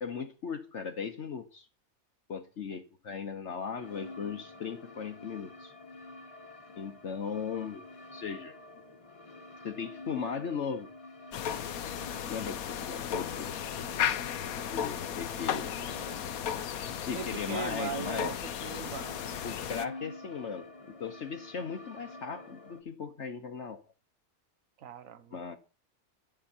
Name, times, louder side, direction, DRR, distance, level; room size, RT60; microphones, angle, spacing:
voice 1, 0.0-1.7 2.3-5.7 6.8-7.8 8.1-8.6 9.6-10.9 12.2-13.5 14.6-15.8 17.0-18.3 19.4-23.8 25.3-25.6, left 6 dB, 60° left, 1.2 m, -37 dB
sound 1, 3.8-22.8, left 2 dB, 25° left, 1.3 m, -48 dB
sound 2, 11.3-19.9, left 9 dB, 85° left, 1.3 m, -35 dB
voice 2, 17.1-19.2 24.8-25.4, right 8 dB, 70° right, 1.4 m, -39 dB
11.5 x 10.5 x 4.4 m
omnidirectional pair, 1.5 m